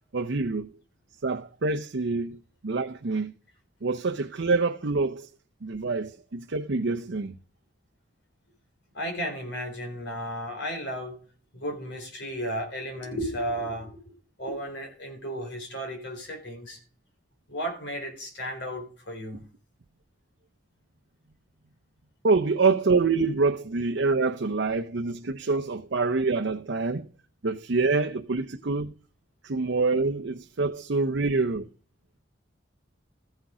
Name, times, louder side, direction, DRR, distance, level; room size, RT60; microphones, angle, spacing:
voice 1, 0.1-0.7 1.2-2.4 2.6-3.3 3.8-5.3 5.6-7.3 22.2-27.1 27.4-28.9 29.4-31.7, right 3 dB, 70° right, 0.7 m, -26 dB
voice 2, 8.9-11.2 11.5-16.8 17.5-19.4, equal, 70° left, 3.6 m, -34 dB
14.0 x 6.5 x 4.9 m
head